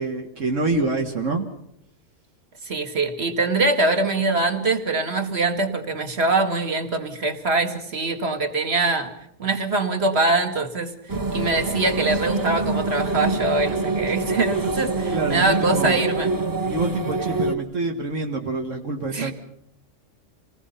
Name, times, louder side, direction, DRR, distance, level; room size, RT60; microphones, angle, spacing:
voice 1, 0.0-1.5 15.1-16.0 16.7-19.3, right 3 dB, 75° right, 2 dB, 2.0 m, -26 dB
voice 2, 2.6-9.1 9.4-10.9 11.3-16.3 19.1-19.3, right 3 dB, 55° right, 5 dB, 2.3 m, -23 dB
sound 1, 11.1-17.6, right 3 dB, 20° right, 0.8 m, -25 dB
27.5 x 19.0 x 5.7 m, 0.76 s
omnidirectional pair, 1.3 m